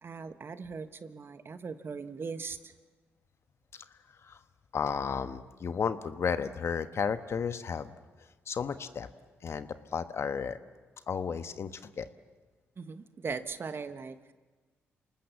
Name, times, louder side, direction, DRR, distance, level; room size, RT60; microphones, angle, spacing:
voice 1, 0.0-2.7 12.8-14.3, right 5 dB, 45° right, 11 dB, 1.4 m, -39 dB
voice 2, 4.7-7.9 8.5-9.1 9.4-10.6 11.1-12.1, left 6 dB, 55° left, 11 dB, 1.3 m, -33 dB
27.5 x 19.0 x 7.3 m, 1.3 s
supercardioid pair, 55°, 5 cm